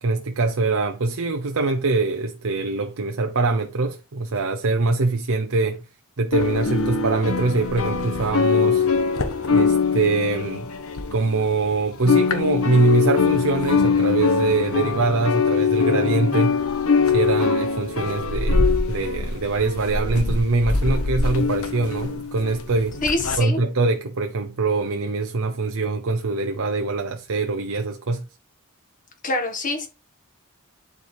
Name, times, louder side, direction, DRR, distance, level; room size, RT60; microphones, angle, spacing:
voice 1, 0.0-5.8 6.2-8.9 9.5-10.7 11.1-16.6 17.1-23.0 23.4-28.2, right 3 dB, 70° right, 0.7 m, -23 dB
sound 1, 6.3-11.7 11.9-23.4, left 5 dB, 75° left, 1.2 m, -22 dB
voice 2, 23.0-23.6 29.2-29.9, left 2 dB, 35° left, 1.7 m, -24 dB
10.5 x 4.7 x 3.4 m
head